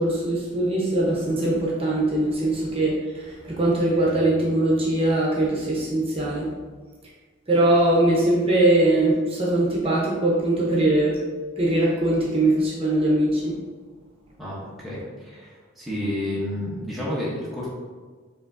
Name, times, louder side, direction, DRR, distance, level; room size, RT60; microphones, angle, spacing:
voice 1, 0.0-6.5 7.5-11.2 11.6-13.5, right 1 dB, 30° right, -4 dB, 0.8 m, -21 dB
voice 2, 14.4-17.7, left 1 dB, ahead, -8 dB, 0.8 m, -30 dB
4.9 x 3.3 x 2.6 m, 1.4 s
head